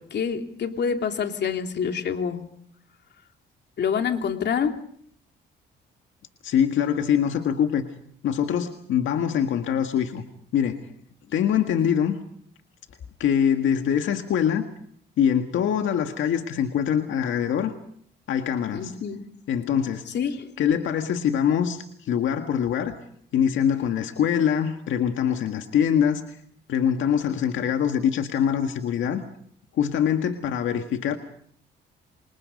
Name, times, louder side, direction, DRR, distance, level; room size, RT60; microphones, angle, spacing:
voice 1, 0.0-2.5 3.8-4.7 18.7-19.2 20.1-20.5, left 7 dB, 60° left, 5 dB, 2.9 m, -27 dB
voice 2, 6.4-7.8 8.2-10.2 10.5-10.8 11.3-12.2 13.2-14.6 15.2-17.7 18.3-19.0 19.5-20.0 20.6-22.9 23.3-26.4 26.7-29.2 29.7-31.2, left 8 dB, 75° left, 6 dB, 1.8 m, -23 dB
29.0 x 26.5 x 5.4 m, 0.64 s
cardioid pair, 90°, 20 cm